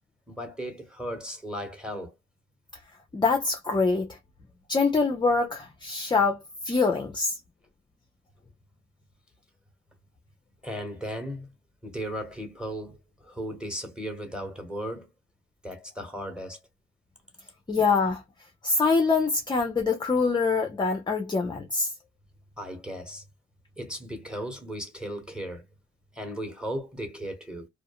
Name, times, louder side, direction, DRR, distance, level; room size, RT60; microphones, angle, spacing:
voice 1, 0.3-2.1 10.6-11.5 11.8-15.1 15.6-16.6 22.6-23.2 23.8-25.6 26.1-27.7, equal, 5° right, 1.1 m, -36 dB
voice 2, 3.1-4.2 4.7-6.4 6.7-7.4 17.7-18.2 18.6-21.9, left 4 dB, 15° left, 0.4 m, -24 dB
2.4 x 2.1 x 2.8 m
cardioid pair, 90°, 30 cm